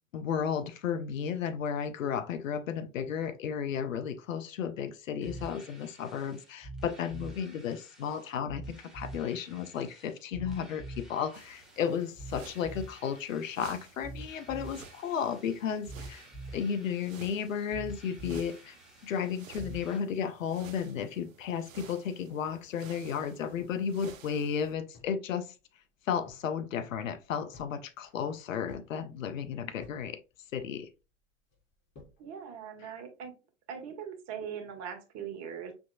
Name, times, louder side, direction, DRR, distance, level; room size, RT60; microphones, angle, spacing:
voice 1, 0.1-16.3 16.5-18.8 19.0-25.5 26.1-30.2 30.5-30.9, left 7 dB, 80° left, 0.6 m, -33 dB
sound 1, 5.2-20.0, right 2 dB, ahead, 1.7 m, -46 dB
sound 2, 11.3-24.7, right 6 dB, 85° right, 0.7 m, -53 dB
sound 3, 23.6-25.3 25.6-25.7 26.0-26.5 26.9-27.7 28.0-30.1 30.3-31.0 31.5-32.2, left 3 dB, 30° left, 2.7 m, -56 dB
voice 2, 32.2-33.3 33.7-35.7, right 7 dB, 45° right, 1.4 m, -40 dB
6.0 x 3.5 x 2.2 m
hypercardioid pair, 90°, 38 cm